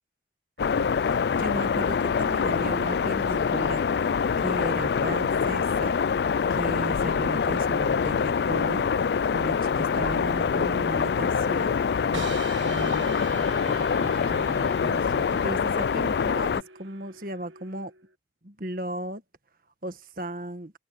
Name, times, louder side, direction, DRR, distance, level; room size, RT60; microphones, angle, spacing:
sound 1, 0.6-16.6, left 6 dB, 60° left, 0.3 m, -25 dB
voice 1, 1.0-3.8 4.4-5.9 6.5-8.9 9.3-11.8 12.6-17.9 18.4-19.2 19.8-20.7, right 1 dB, 50° right, 1.6 m, -36 dB
sound 2, 12.1-18.1, right 4 dB, 90° right, 1.4 m, -42 dB
head